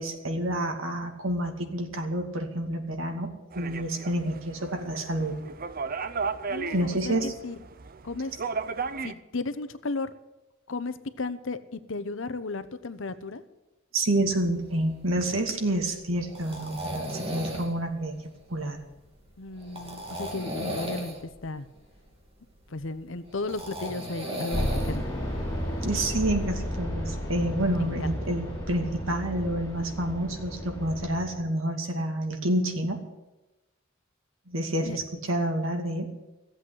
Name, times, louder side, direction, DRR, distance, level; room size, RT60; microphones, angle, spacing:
voice 1, 0.0-5.4 6.7-7.3 13.9-18.8 25.8-33.0 34.5-36.1, right 1 dB, 85° right, 3 dB, 2.5 m, -29 dB
sound 1, 3.5-9.1, right 5 dB, 45° right, 0.7 m, -35 dB
voice 2, 6.5-7.6 8.0-8.3 9.0-10.1 10.7-13.4 19.4-21.7 22.7-25.0 27.7-27.9 34.8-35.0, left 3 dB, 70° left, 12 dB, 0.9 m, -34 dB
sound 2, 14.3-26.5, equal, 30° right, 3.3 m, -38 dB
sound 3, 24.5-31.3, equal, 15° left, 6.3 m, -33 dB
15.5 x 8.2 x 9.8 m, 1.0 s
head